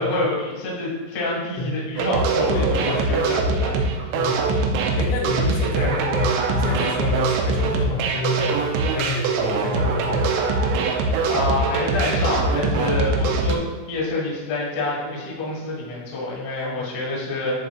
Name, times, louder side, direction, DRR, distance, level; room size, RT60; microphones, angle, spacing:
voice 1, 0.0-4.1 11.3-17.6, left 2 dB, 60° left, -5 dB, 1.8 m, -27 dB
sound 1, 2.0-13.6, right 3 dB, 90° right, 2.5 m, -22 dB
voice 2, 2.5-3.3 4.1-4.6 4.9-10.3 16.6-16.8, left 2 dB, 85° left, -1 dB, 3.1 m, -28 dB
10.5 x 3.8 x 2.4 m, 1.4 s
omnidirectional pair, 5.5 m